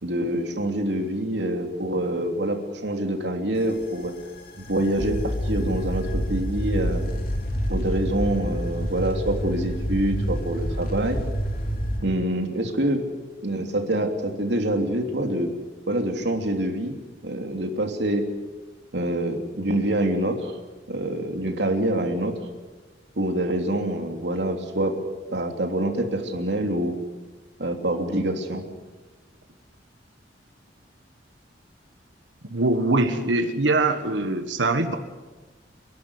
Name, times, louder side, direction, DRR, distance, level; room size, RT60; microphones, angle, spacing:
voice 1, 0.0-4.1 4.6-7.0 7.7-11.2 12.0-13.0 13.4-15.5 15.9-17.0 17.2-18.3 18.9-20.5 20.9-22.3 23.2-25.0 25.3-26.9 27.6-28.6, right 1 dB, 65° right, 3 dB, 3.1 m, -26 dB
sound 1, 3.6-12.0, equal, 55° left, 3.1 m, -28 dB
voice 2, 32.5-35.0, right 2 dB, 85° right, 6 dB, 1.6 m, -22 dB
29.5 x 12.0 x 9.7 m, 1.2 s
head